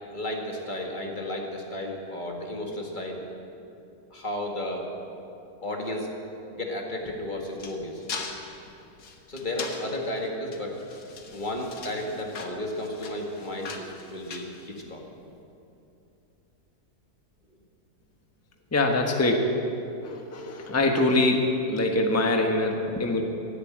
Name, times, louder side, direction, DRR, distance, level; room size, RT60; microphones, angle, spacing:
voice 1, 0.1-3.2 4.1-4.9 5.6-6.1 6.5-8.0 9.3-10.8 11.3-15.0, left 1 dB, 30° left, 0 dB, 2.0 m, -33 dB
sound 1, 7.0-15.2, left 4 dB, 80° left, 1.8 m, -41 dB
voice 2, 18.7-19.5 20.0-23.2, left 2 dB, 10° left, 2 dB, 1.1 m, -24 dB
17.0 x 8.4 x 8.5 m, 2.8 s
omnidirectional pair, 1.7 m